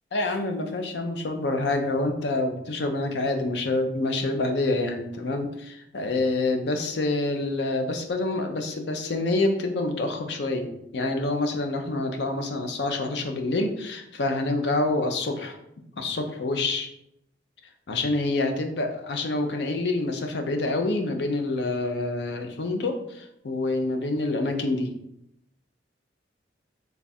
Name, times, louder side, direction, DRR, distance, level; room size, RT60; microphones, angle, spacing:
voice 1, 0.1-15.6 16.0-16.9 17.9-24.9, left 2 dB, 65° left, 5 dB, 0.5 m, -27 dB
3.3 x 2.3 x 4.1 m, 0.79 s
head